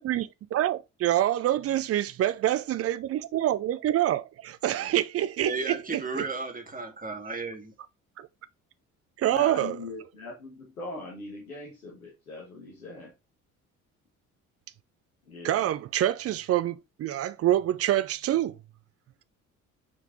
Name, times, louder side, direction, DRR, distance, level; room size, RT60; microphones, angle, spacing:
voice 1, 0.0-6.3 8.2-8.3 9.2-9.8 15.4-18.6, right 12 dB, 35° right, 0.5 m, -26 dB
voice 2, 5.4-7.7, right 4 dB, 20° right, 1.9 m, -34 dB
voice 3, 9.3-13.1 15.3-15.6, left 2 dB, 85° left, 1.6 m, -41 dB
5.7 x 4.5 x 3.7 m
figure-of-eight pair, 50°, 42 cm